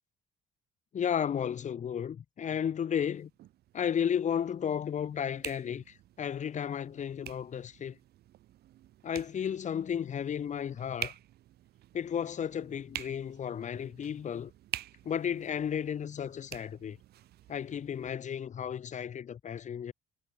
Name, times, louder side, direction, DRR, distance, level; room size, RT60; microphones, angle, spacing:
voice 1, 0.9-3.3 3.7-8.0 9.0-11.1 11.9-14.5 15.1-17.0 17.5-19.9, left 8 dB, 45° left, 3.6 m, -33 dB
sound 1, 3.0-18.1, right 14 dB, 70° right, 4.7 m, -48 dB
cardioid pair, 110°, 17 cm